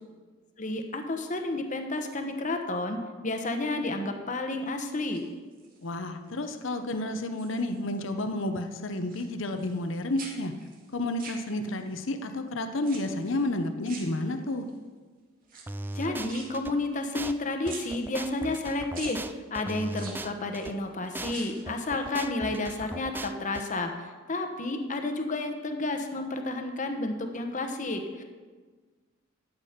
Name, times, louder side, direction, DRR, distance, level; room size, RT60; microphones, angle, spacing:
voice 1, 0.6-5.3 15.9-28.2, left 2 dB, 40° left, 5 dB, 1.0 m, -31 dB
sound 1, 5.0-5.9 6.4-6.8 7.1-8.1 8.4-9.9 10.2-11.9 12.8-13.4 13.8-14.7 15.4-17.4 17.6-18.6 18.9-19.2 19.9-20.7 21.2-21.7 22.0-22.1, right 4 dB, 45° right, 2.1 m, -46 dB
voice 2, 5.8-10.5 10.9-14.7, left 1 dB, 65° left, 7 dB, 0.8 m, -31 dB
sound 2, 15.7-16.7 17.2-17.3 17.7-20.7 21.2-21.3 21.7-23.6, right 2 dB, 10° right, 0.3 m, -38 dB
13.0 x 8.3 x 5.1 m, 1.4 s
head